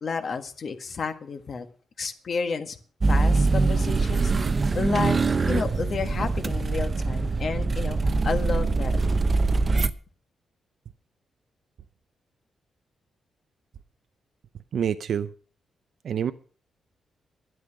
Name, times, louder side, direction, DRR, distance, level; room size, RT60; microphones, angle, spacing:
voice 1, 0.0-1.6 2.0-2.8 3.1-5.2 5.5-8.0 8.2-9.0, left 5 dB, 45° left, 1.6 m, -31 dB
sound 1, 3.0-9.9, right 3 dB, 30° right, 0.8 m, -23 dB
voice 2, 14.7-15.3 16.0-16.3, right 8 dB, 65° right, 0.6 m, -26 dB
12.0 x 11.0 x 6.1 m
cardioid pair, 125°, 0 cm